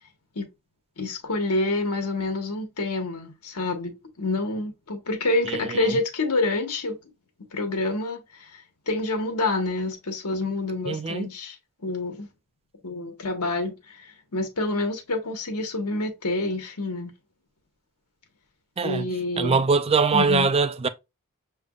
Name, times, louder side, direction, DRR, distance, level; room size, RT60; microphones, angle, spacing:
voice 1, 1.0-7.0 7.5-11.6 11.8-12.3 12.8-17.1 18.8-19.6 20.1-20.5, left 2 dB, 90° left, 1.3 m, -28 dB
voice 2, 5.5-6.0 10.9-11.3 18.8-19.1 19.4-20.9, right 4 dB, 25° right, 0.4 m, -23 dB
6.4 x 3.3 x 2.4 m
head